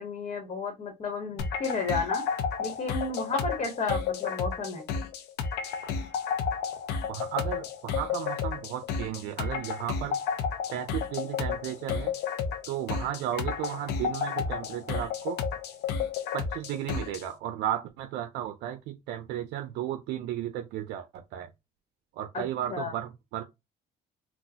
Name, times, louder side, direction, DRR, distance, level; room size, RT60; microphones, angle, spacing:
voice 1, 0.0-2.2 2.6-4.9 22.3-22.9, left 4 dB, 40° left, 1.0 m, -32 dB
sound 1, 1.4-17.3, left 6 dB, 80° left, 0.6 m, -32 dB
voice 2, 7.1-10.2 10.7-12.1 12.7-15.4 16.3-21.5 22.2-23.4, right 11 dB, 85° right, 0.5 m, -34 dB
3.8 x 2.1 x 2.8 m
cardioid pair, 110°, 17 cm